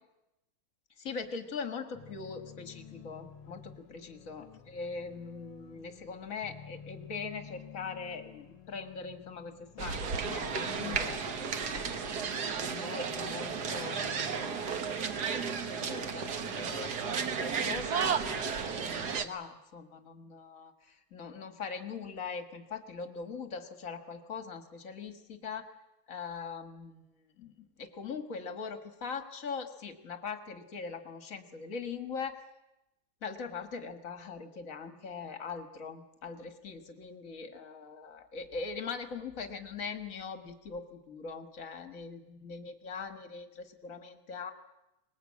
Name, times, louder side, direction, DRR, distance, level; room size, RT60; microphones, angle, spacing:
voice 1, 1.0-12.2 12.7-18.2 18.6-25.7 26.1-32.4 33.2-44.5, left 5 dB, 40° left, 7 dB, 1.3 m, -41 dB
sound 1, 1.9-19.2, left 8 dB, 60° left, 1.6 m, -51 dB
sound 2, 9.8-19.3, right 6 dB, 75° right, 0.9 m, -33 dB
24.0 x 20.0 x 8.5 m, 0.94 s
omnidirectional pair, 3.5 m